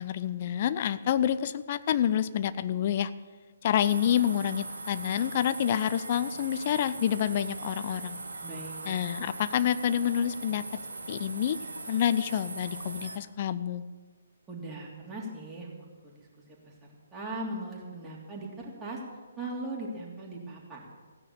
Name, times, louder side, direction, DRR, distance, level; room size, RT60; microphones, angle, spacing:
voice 1, 0.0-3.1 3.6-8.2 8.9-10.6 11.1-11.6 11.9-13.8, left 10 dB, 40° left, 14 dB, 0.6 m, -28 dB
sound 1, 3.8-13.2, right 3 dB, 70° right, 1.5 m, -40 dB
voice 2, 8.4-8.8 14.5-15.7 16.0-16.2 17.1-19.0 19.4-20.8, right 2 dB, 10° right, -4 dB, 3.1 m, -38 dB
16.0 x 9.9 x 7.1 m, 1.4 s
figure-of-eight pair, 135°, 0 cm